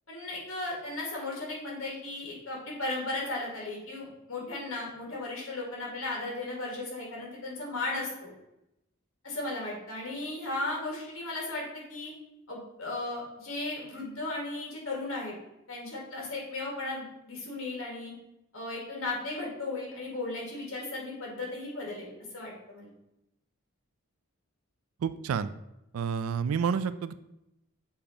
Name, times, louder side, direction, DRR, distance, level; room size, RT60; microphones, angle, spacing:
voice 1, 0.1-8.3 9.2-12.1 12.5-15.3 15.7-18.1 18.5-22.9, left 2 dB, 60° left, -2 dB, 2.0 m, -36 dB
voice 2, 25.0-25.5 25.9-27.2, right 6 dB, 70° right, 13 dB, 0.3 m, -29 dB
7.0 x 2.9 x 5.0 m, 0.88 s
head